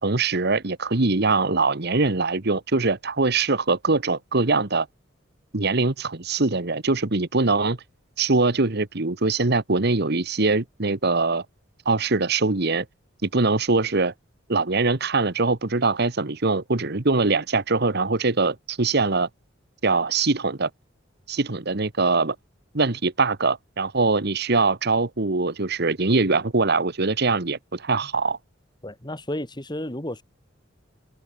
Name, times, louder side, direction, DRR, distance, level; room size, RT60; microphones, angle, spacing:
voice 1, 0.0-4.9 5.5-7.8 8.2-11.4 11.8-12.8 13.2-14.1 14.5-19.3 19.8-20.7 21.3-22.3 22.7-28.4, right 3 dB, 55° right, 1.4 m, -22 dB
voice 2, 28.8-30.2, left 1 dB, 20° left, 3.6 m, -32 dB
head